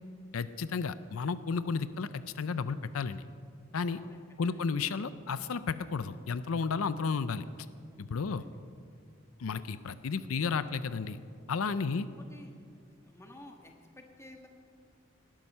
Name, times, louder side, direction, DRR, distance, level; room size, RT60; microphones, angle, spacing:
voice 1, 0.3-3.2 3.7-4.0 4.4-7.4 8.0-8.4 9.4-11.2 11.5-12.1, left 5 dB, 90° left, 14 dB, 0.5 m, -32 dB
voice 2, 3.9-4.6 8.2-8.6 11.8-12.5 12.9-14.5, left 1 dB, 15° left, 2 dB, 1.6 m, -53 dB
18.5 x 12.5 x 5.5 m, 2.3 s
head